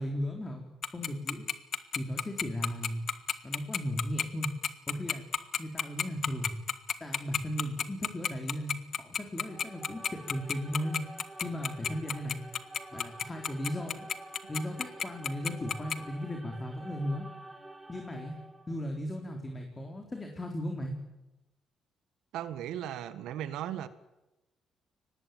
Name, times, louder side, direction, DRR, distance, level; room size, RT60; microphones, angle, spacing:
voice 1, 0.0-1.5 2.0-3.0 3.4-4.5 4.9-5.2 5.6-6.5 7.0-8.7 9.0-11.0 11.4-12.4 12.9-14.1 14.5-17.2 17.9-18.4 18.7-20.9, equal, 20° left, 3 dB, 3.9 m, -36 dB
Tick-tock, 0.8-16.0, left 7 dB, 55° left, 1.5 m, -30 dB
sound 1, 9.4-18.8, right 2 dB, 15° right, 2.5 m, -48 dB
voice 2, 22.3-23.9, right 11 dB, 90° right, 13 dB, 1.5 m, -36 dB
24.0 x 19.0 x 9.3 m, 1.0 s
cardioid pair, 90°, 0 cm